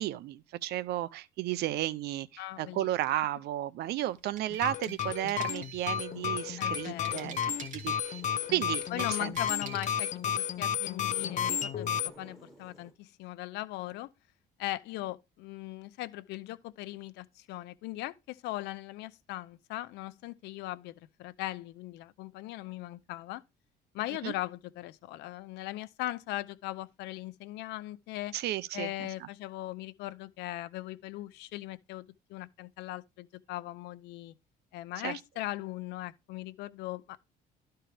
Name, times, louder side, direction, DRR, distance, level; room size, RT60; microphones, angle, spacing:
voice 1, 0.0-8.2 8.5-9.3 24.2-24.3 28.3-29.3 35.0-35.2, right 14 dB, 75° right, 0.7 m, -33 dB
voice 2, 2.4-2.9 6.6-7.2 8.9-14.1 14.6-23.4 23.9-28.3 28.7-34.3 34.7-37.2, left 16 dB, 90° left, 0.7 m, -39 dB
sound 1, 4.2-6.1 6.6-8.3 8.6-10.1, right 6 dB, 45° right, 2.4 m, -46 dB
sound 2, 4.5-12.1, left 9 dB, 45° left, 0.7 m, -32 dB
sound 3, 6.1-12.9, equal, ahead, 6.3 m, -54 dB
12.5 x 4.5 x 3.4 m
cardioid pair, 110°, 17 cm